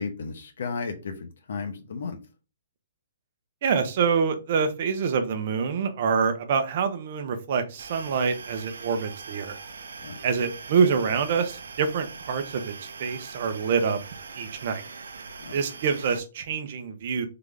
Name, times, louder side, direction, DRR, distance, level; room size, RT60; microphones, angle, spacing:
voice 1, 0.0-2.2 10.0-10.2 15.4-15.6, left 5 dB, 55° left, 0.9 m, -34 dB
voice 2, 3.6-9.6 10.2-14.0 14.3-14.8 15.5-17.3, right 6 dB, 35° right, 0.7 m, -26 dB
sound 1, 7.8-16.2, right 5 dB, 80° right, 0.7 m, -42 dB
3.8 x 3.6 x 3.4 m
hypercardioid pair, 180°, 0 cm